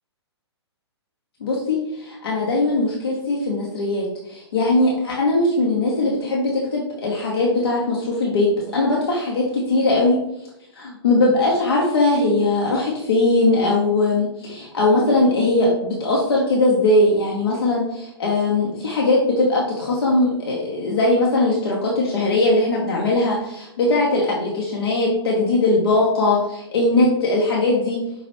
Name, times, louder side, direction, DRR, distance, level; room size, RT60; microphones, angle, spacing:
voice 1, 1.4-10.2 10.7-28.0, left 2 dB, 60° left, -4 dB, 0.9 m, -20 dB
5.4 x 2.9 x 3.0 m, 0.83 s
figure-of-eight pair, 115°, 15 cm